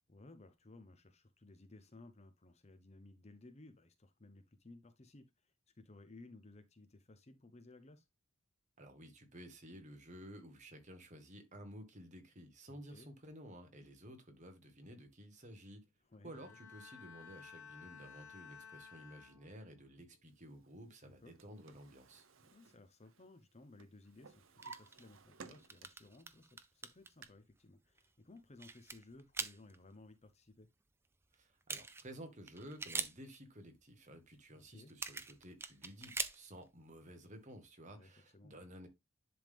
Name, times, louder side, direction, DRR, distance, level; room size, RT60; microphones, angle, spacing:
voice 1, 0.1-8.1 12.7-13.1 16.0-16.6 21.0-21.4 22.4-30.7 34.5-34.9 37.9-38.6, left 2 dB, 30° left, 0.7 m, -59 dB
voice 2, 8.8-15.8 16.2-22.2 31.3-38.9, equal, 35° right, 1.5 m, -53 dB
Bowed string instrument, 16.3-19.9 20.3-20.7, left 6 dB, 80° left, 2.6 m, -56 dB
Drawer open or close, 21.0-23.5 23.8-26.1 26.6-27.2, right 4 dB, 60° right, 0.8 m, -57 dB
sound 1, 24.6-25.1 25.4-27.3 28.0-28.1 28.4-29.8 31.3-31.4 31.6-32.2 32.5-33.4 34.9-36.6, right 4 dB, 10° right, 0.4 m, -43 dB
10.5 x 3.6 x 3.5 m
head